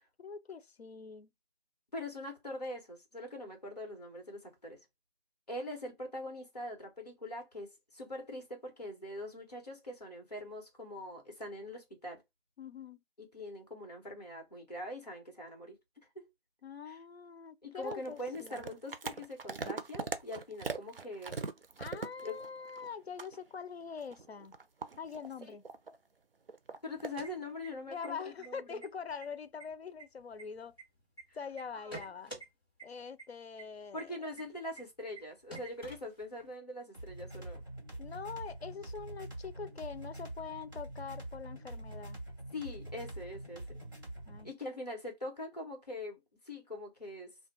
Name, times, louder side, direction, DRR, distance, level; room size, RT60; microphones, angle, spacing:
voice 1, 0.2-1.3 12.6-13.0 16.6-18.6 21.8-24.5 25.0-25.6 27.9-30.8 31.3-32.3 32.8-34.3 38.0-42.2 44.3-44.5, left 6 dB, 80° left, 0.6 m, -44 dB
voice 2, 1.9-4.8 5.5-7.7 7.9-12.2 13.2-15.8 16.1-16.3 16.9-17.0 17.6-21.4 22.2-22.4 25.4-25.6 26.8-28.8 31.3-31.4 31.8-32.0 33.9-37.6 42.5-43.8 44.4-47.4, left 1 dB, 40° left, 1.2 m, -43 dB
sound 1, 17.8-22.9 23.2-23.4 23.9-26.0 26.5-27.2, right 4 dB, 65° right, 0.5 m, -41 dB
sound 2, 26.9-28.1 28.4-28.5 28.8-29.3 29.6-31.2 31.6-32.5 32.8-32.9 33.2-33.3 33.6-33.7 34.0-34.1 34.4-34.5 34.8-34.9 35.2-35.3 35.5-36.5, right 2 dB, 20° left, 1.4 m, -48 dB
sound 3, 36.9-44.5, right 1 dB, 20° right, 1.2 m, -45 dB
2.4 x 2.2 x 3.9 m
figure-of-eight pair, 175°, 31 cm